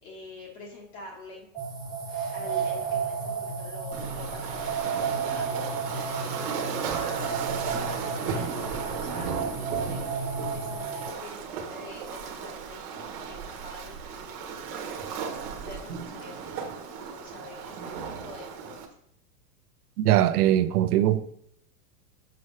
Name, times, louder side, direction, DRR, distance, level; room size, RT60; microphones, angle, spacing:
voice 1, 0.0-1.5 2.3-7.5 8.0-18.9, left 2 dB, 35° left, 1.6 m, -46 dB
sound 1, 1.5-11.1, right 5 dB, ahead, 0.4 m, -32 dB
Waves surf, 3.9-18.9, right 6 dB, 35° right, 1.1 m, -35 dB
voice 2, 20.0-21.2, right 12 dB, 75° right, 0.7 m, -21 dB
6.9 x 6.0 x 3.3 m
supercardioid pair, 180°, 46 cm